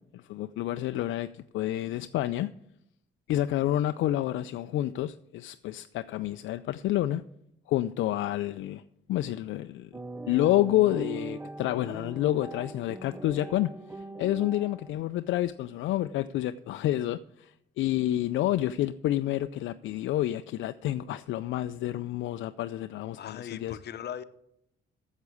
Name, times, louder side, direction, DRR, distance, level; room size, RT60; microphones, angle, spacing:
voice 1, 0.1-2.5 3.3-7.2 7.7-8.8 9.1-9.9 10.3-23.8, left 14 dB, 75° left, 0.4 m, -29 dB
sound 1, 9.9-14.9, right 2 dB, 10° right, 0.4 m, -41 dB
voice 2, 23.2-24.2, left 9 dB, 55° left, 0.8 m, -39 dB
8.3 x 7.4 x 8.2 m
cardioid pair, 90°, 20 cm